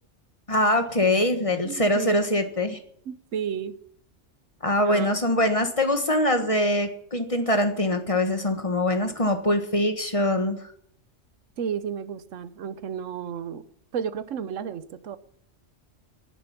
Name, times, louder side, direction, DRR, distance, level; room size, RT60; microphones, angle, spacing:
voice 1, 0.5-2.8 4.6-10.6, left 1 dB, 25° left, 6 dB, 1.5 m, -23 dB
voice 2, 1.6-2.2 3.1-3.8 4.8-5.1 11.6-13.6 13.9-15.2, right 7 dB, 85° right, 14 dB, 1.2 m, -32 dB
10.5 x 10.5 x 9.7 m, 0.67 s
omnidirectional pair, 1.3 m